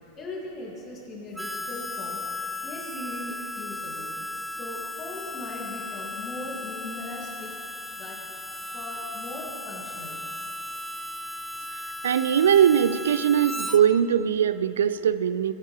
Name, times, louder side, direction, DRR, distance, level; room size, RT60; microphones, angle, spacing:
voice 1, 0.2-2.2 2.6-4.2 4.5-7.6 8.0-8.2 8.7-10.2, left 2 dB, 25° left, -3 dB, 2.4 m, -39 dB
Harmonica, 1.4-13.8, left 2 dB, ahead, 0.5 m, -36 dB
voice 2, 11.7-15.5, right 9 dB, 65° right, 14 dB, 0.3 m, -21 dB
18.0 x 8.6 x 3.3 m, 2.9 s
figure-of-eight pair, 90°, 0 cm